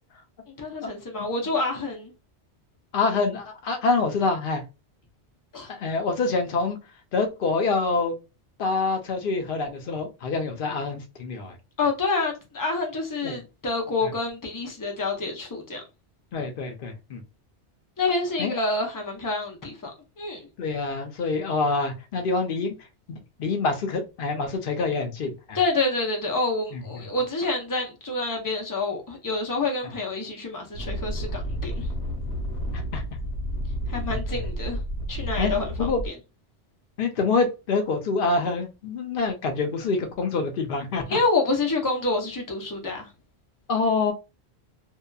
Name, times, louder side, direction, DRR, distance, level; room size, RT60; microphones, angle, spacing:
voice 1, 0.6-2.1 5.5-5.7 11.8-15.8 18.0-20.4 25.5-31.9 33.9-34.8 35.1-35.9 41.1-43.1, left 3 dB, 25° left, 0.5 m, -27 dB
voice 2, 2.9-4.6 5.7-6.8 7.1-8.1 8.6-11.5 13.2-13.4 14.0-14.1 16.3-17.2 18.4-18.6 20.6-22.8 23.1-25.6 26.7-27.0 32.7-33.0 34.1-34.4 35.4-35.5 35.8-36.0 37.0-41.2 43.7-44.1, left 4 dB, 55° left, 0.7 m, -26 dB
sound 1, 30.7-36.1, equal, 75° left, 1.1 m, -31 dB
2.7 x 2.2 x 2.2 m
omnidirectional pair, 1.2 m